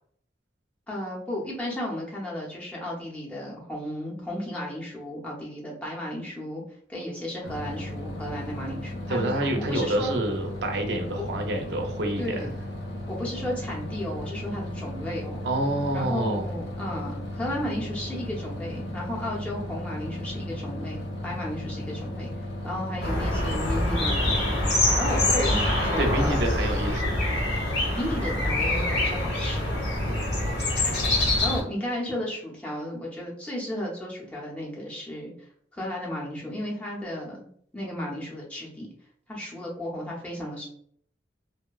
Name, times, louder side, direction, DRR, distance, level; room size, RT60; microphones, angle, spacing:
voice 1, 0.9-6.6 6.9-10.2 11.2-11.3 12.2-12.5 13.1-15.5 15.9-22.3 22.6-26.4 27.9-29.7 31.4-35.3 35.7-38.9 39.3-40.7, left 1 dB, 5° left, -4 dB, 0.6 m, -34 dB
sound 1, 7.4-26.3, left 1 dB, 90° left, 0.6 m, -35 dB
voice 2, 9.1-12.5 15.4-16.4 26.0-27.3 30.0-30.3, right 1 dB, 65° right, 3 dB, 0.5 m, -28 dB
sound 2, 23.0-31.6, left 1 dB, 70° left, 0.9 m, -25 dB
sound 3, 30.5-31.5, left 2 dB, 45° left, 0.4 m, -41 dB
2.6 x 2.1 x 2.3 m, 0.62 s
head